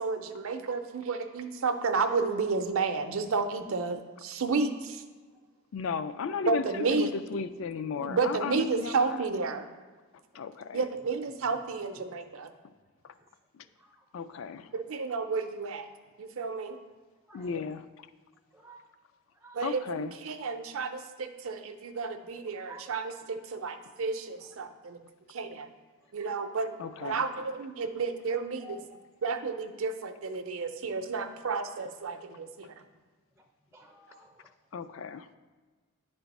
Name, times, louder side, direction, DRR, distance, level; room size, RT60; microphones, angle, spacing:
voice 1, 0.0-5.0 6.5-7.1 8.0-9.7 10.7-12.5 14.7-15.9 16.2-16.8 19.5-25.0 25.3-25.7 26.1-26.7 27.0-28.8 29.2-32.7, right 4 dB, 70° right, 9 dB, 0.5 m, -31 dB
voice 2, 5.7-6.6 6.9-9.2 10.3-10.8 13.5-13.6 14.1-14.7 17.3-18.1 19.6-20.1 26.8-27.2 34.7-35.3, left 6 dB, 65° left, 11 dB, 0.3 m, -35 dB
voice 3, 10.3-10.8 13.2-13.3 13.8-14.0 17.3-17.7 18.4-18.9 19.3-19.8 22.7-22.9 24.4-24.5 26.0-26.5 26.8-26.9 28.6-28.8 30.6-30.7 33.4-34.5, equal, 10° right, 1 dB, 0.4 m, -54 dB
10.0 x 3.4 x 4.1 m, 1.4 s
head